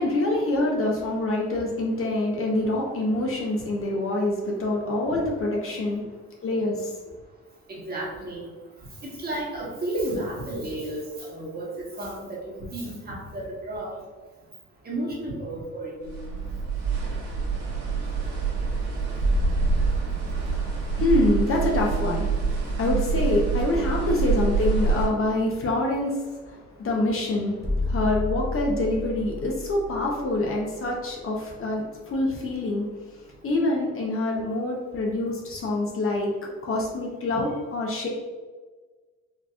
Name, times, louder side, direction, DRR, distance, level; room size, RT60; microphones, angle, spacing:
voice 1, 0.0-6.1 6.4-6.9 20.5-22.3 22.7-27.5 27.9-32.8 33.4-36.3 36.6-38.1, left 2 dB, 45° left, -1 dB, 0.9 m, -26 dB
voice 2, 7.7-8.5 9.0-14.0 14.8-16.2, right 1 dB, 30° right, -4 dB, 1.3 m, -32 dB
sound 1, 16.0-25.1, right 5 dB, 70° right, 1.5 m, -26 dB
sound 2, 19.2-23.0 26.6-26.7 27.6-31.5, left 2 dB, 10° left, 1.3 m, -31 dB
4.6 x 2.8 x 2.4 m, 1.3 s
cardioid pair, 90°, 30 cm